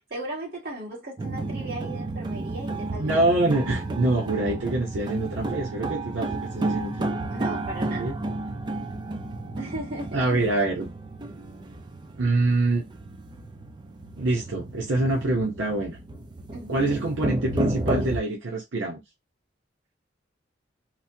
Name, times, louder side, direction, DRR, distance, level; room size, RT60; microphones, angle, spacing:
voice 1, 0.1-3.5 7.3-8.1 9.5-10.5 16.5-17.0, right 2 dB, 55° right, 1.5 m, -37 dB
stab rythm stab rythm, 1.2-18.2, right 2 dB, 25° right, 0.4 m, -32 dB
voice 2, 3.0-7.1 8.0-8.2 10.1-10.9 12.2-12.8 14.2-16.0 16.7-19.0, right 2 dB, 90° right, 0.8 m, -25 dB
3.1 x 2.1 x 2.7 m
head